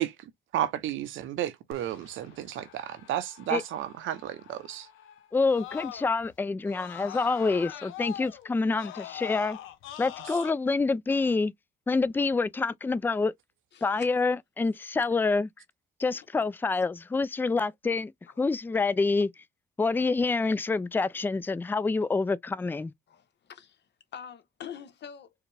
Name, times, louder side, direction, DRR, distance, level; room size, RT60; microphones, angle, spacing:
voice 1, 0.0-4.9, right 12 dB, 85° right, 0.7 m, -32 dB
Screaming, 1.7-6.3 6.7-10.5, left 12 dB, 85° left, 0.7 m, -44 dB
voice 2, 5.3-9.6 10.0-11.5 11.9-13.3 13.8-15.5 16.0-18.1 18.4-19.3 19.8-22.9, left 3 dB, 10° left, 0.3 m, -27 dB
voice 3, 13.7-14.1 15.0-15.2 16.7-16.8 17.5-17.6 18.3-18.5 23.1-23.8 24.1-25.3, left 8 dB, 60° left, 1.0 m, -45 dB
4.8 x 2.2 x 3.3 m
cardioid pair, 90°, 20 cm